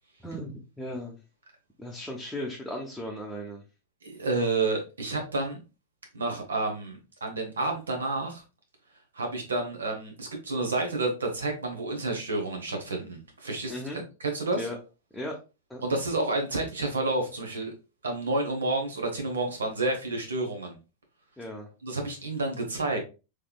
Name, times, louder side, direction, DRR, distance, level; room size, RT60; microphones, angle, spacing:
voice 1, 0.2-1.2 1.8-3.6 13.7-14.0 14.5-14.8 15.1-15.4 15.7-15.8 21.4-21.7, left 1 dB, 5° left, 0.8 m, -36 dB
voice 2, 4.0-5.6 6.1-8.4 9.1-13.8 14.2-14.6 15.8-17.7 18.0-20.8 21.8-23.0, right 2 dB, 90° right, 1.1 m, -30 dB
3.4 x 3.2 x 2.3 m
hypercardioid pair, 110°, 0 cm